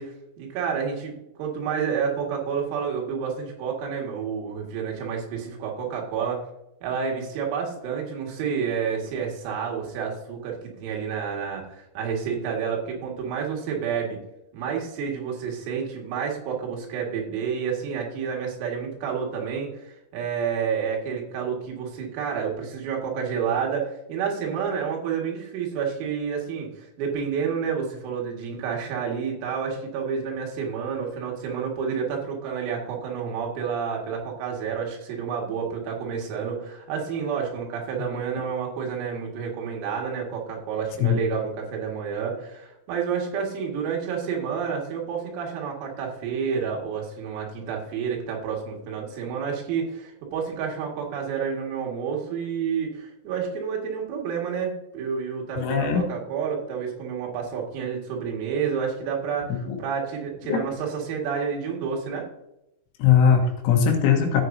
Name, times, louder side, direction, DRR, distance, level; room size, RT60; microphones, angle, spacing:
voice 1, 0.0-6.4 6.8-14.2 14.5-62.3, right 6 dB, 80° right, -1 dB, 4.6 m, -29 dB
voice 2, 55.6-56.1 59.7-59.8 60.5-60.6 63.0-64.4, left 7 dB, 75° left, 2 dB, 3.7 m, -20 dB
14.5 x 7.5 x 2.7 m, 0.89 s
omnidirectional pair, 6.0 m